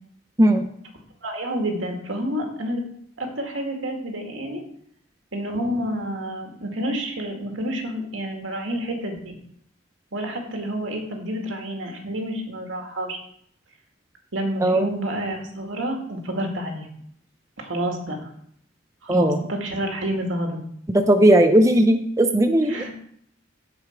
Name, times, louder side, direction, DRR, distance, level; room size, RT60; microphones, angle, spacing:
voice 1, 1.2-2.8 3.2-4.6 5.3-9.3 10.1-13.2 14.3-16.9 17.6-18.3 19.0-20.6 22.6-22.9, equal, 85° right, 2 dB, 2.1 m, -29 dB
voice 2, 20.9-22.9, right 1 dB, 15° right, 6 dB, 0.5 m, -17 dB
15.5 x 5.1 x 4.5 m, 0.68 s
head